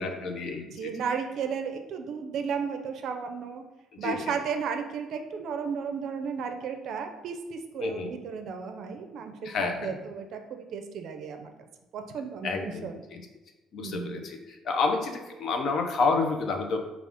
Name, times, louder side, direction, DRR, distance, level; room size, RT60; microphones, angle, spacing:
voice 1, 0.0-0.9 3.9-4.3 7.8-8.1 9.4-10.0 12.4-13.2 13.7-16.9, left 4 dB, 50° left, 4 dB, 0.5 m, -29 dB
voice 2, 0.7-3.6 4.0-11.5 11.9-12.9 13.8-14.2, right 6 dB, 60° right, 5 dB, 0.4 m, -34 dB
4.9 x 2.4 x 3.4 m, 1.1 s
cardioid pair, 140°, 0 cm